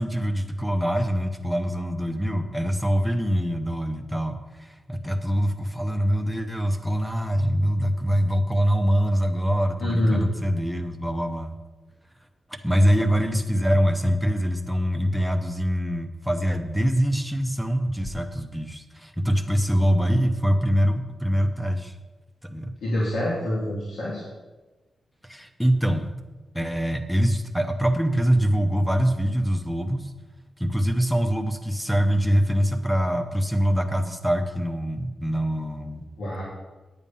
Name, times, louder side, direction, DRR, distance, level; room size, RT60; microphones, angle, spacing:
voice 1, 0.0-11.6 12.5-21.9 22.4-22.8 25.2-26.1 26.5-30.1 30.6-36.0, equal, ahead, 7 dB, 0.8 m, -24 dB
voice 2, 9.8-10.2 22.8-24.2 36.2-36.4, left 1 dB, 85° left, -7 dB, 3.1 m, -26 dB
9.6 x 8.9 x 5.5 m, 1.2 s
wide cardioid pair, 170°, 0 cm